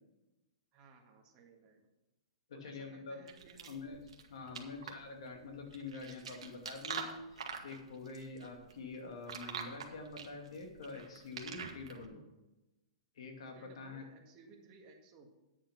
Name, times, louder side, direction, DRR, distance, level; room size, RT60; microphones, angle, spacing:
voice 1, 0.7-1.9 2.5-3.8 4.4-4.8 13.6-15.4, right 4 dB, 30° right, 1 dB, 1.9 m, -59 dB
voice 2, 2.5-3.2 3.7-4.0 4.3-12.2 13.2-14.0, left 3 dB, 75° left, 3 dB, 2.4 m, -46 dB
sound 1, 3.3-12.0, right 6 dB, 85° right, 1.6 m, -45 dB
9.6 x 7.1 x 5.8 m, 1.0 s
hypercardioid pair, 155°, 3 cm